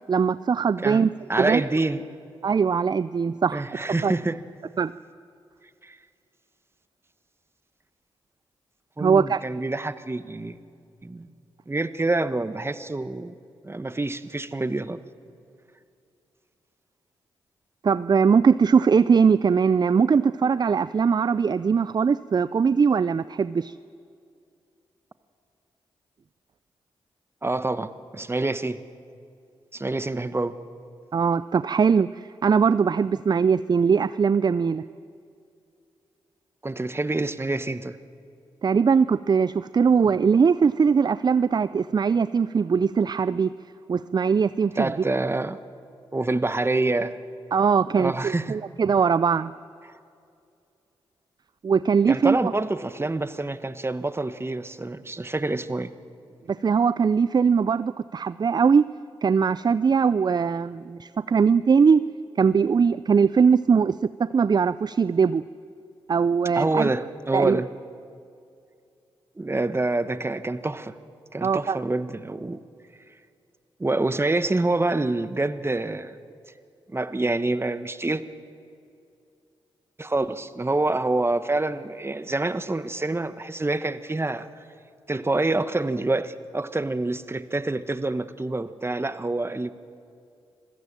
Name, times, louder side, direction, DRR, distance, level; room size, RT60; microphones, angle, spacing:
voice 1, 0.1-1.1 1.4-1.6 2.4-4.1 4.8-4.9 9.0-9.4 17.8-23.8 31.1-34.8 38.6-43.5 43.9-44.9 47.5-49.5 51.6-52.5 56.5-58.8 59.2-62.0 62.4-65.4 66.1-66.9 67.3-67.6 71.4-71.8, right 6 dB, 40° right, 16 dB, 0.4 m, -21 dB
voice 2, 1.3-2.0 3.5-4.4 5.8-6.0 9.0-10.6 11.0-11.3 11.7-13.3 13.6-15.0 27.4-28.8 29.7-30.6 36.6-38.0 44.8-45.6 46.1-47.2 47.9-48.6 52.1-55.9 66.5-67.7 69.4-70.9 71.3-72.6 73.8-76.2 76.9-78.2 80.0-84.5 85.1-89.7, right 2 dB, 25° right, 13 dB, 1.2 m, -26 dB
25.5 x 16.5 x 7.5 m, 2.5 s
supercardioid pair, 45°, 11 cm